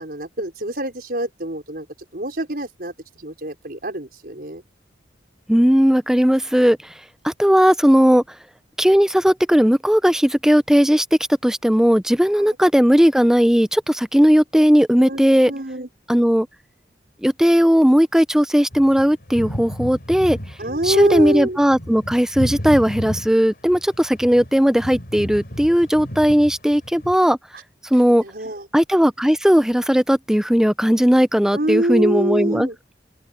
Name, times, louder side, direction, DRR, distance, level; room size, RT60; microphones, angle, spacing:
voice 1, 0.0-1.9 2.1-4.6 12.4-12.6 15.0-15.9 20.6-21.6 28.1-28.7 31.5-32.8, right 1 dB, 55° right, 5.4 m, -25 dB
voice 2, 5.5-6.8 7.2-8.2 8.8-11.1 11.4-15.5 16.1-16.5 17.2-20.4 20.8-27.4 27.9-28.2 28.7-32.7, equal, 5° right, 0.6 m, -17 dB
sound 1, 18.7-27.2, equal, 55° left, 4.4 m, -33 dB
open air
head